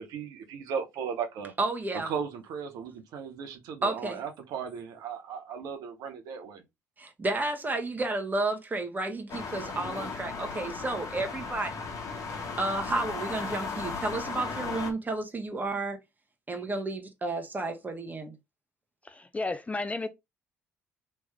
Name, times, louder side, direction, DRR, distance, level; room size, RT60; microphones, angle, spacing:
voice 1, 0.0-1.5 1.9-6.6, right 7 dB, 65° right, 0.8 m, -36 dB
voice 2, 1.6-2.1 3.8-4.2 7.0-11.8 12.6-16.0 16.5-18.3, right 2 dB, 25° right, 1.3 m, -31 dB
sound 1, 9.3-14.9, left 4 dB, 50° left, 1.2 m, -36 dB
voice 3, 19.0-20.1, left 3 dB, 20° left, 0.5 m, -33 dB
3.3 x 3.0 x 3.4 m
hypercardioid pair, 50°, 7 cm